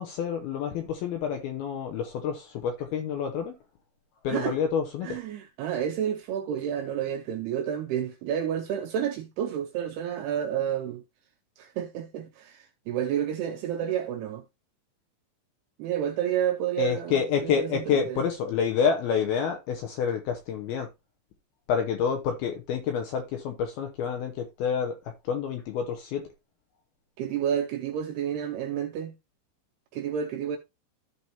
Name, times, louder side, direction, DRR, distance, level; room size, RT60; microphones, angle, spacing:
voice 1, 0.0-3.5 4.2-5.2 16.8-20.9 21.7-25.0 25.3-26.2, left 7 dB, 80° left, 2.3 m, -28 dB
voice 2, 5.0-11.0 11.6-14.4 15.8-18.2 27.2-29.1 29.9-30.6, right 9 dB, 80° right, 2.4 m, -30 dB
14.0 x 4.7 x 2.8 m
omnidirectional pair, 5.4 m